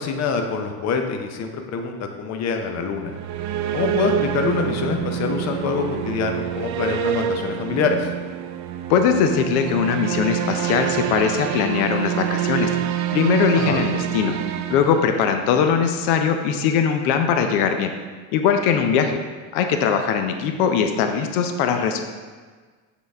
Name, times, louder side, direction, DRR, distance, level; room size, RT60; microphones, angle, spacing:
voice 1, 0.0-3.2 3.7-8.1 13.6-13.8, left 5 dB, 35° left, 4 dB, 0.7 m, -25 dB
sound 1, 2.9-15.7, right 10 dB, 40° right, 0.4 m, -27 dB
voice 2, 8.9-12.7 13.1-14.3 14.7-17.9 18.3-19.2 19.5-22.0, left 7 dB, 80° left, 6 dB, 0.7 m, -20 dB
7.5 x 4.0 x 3.4 m, 1.5 s
supercardioid pair, 115°, 45 cm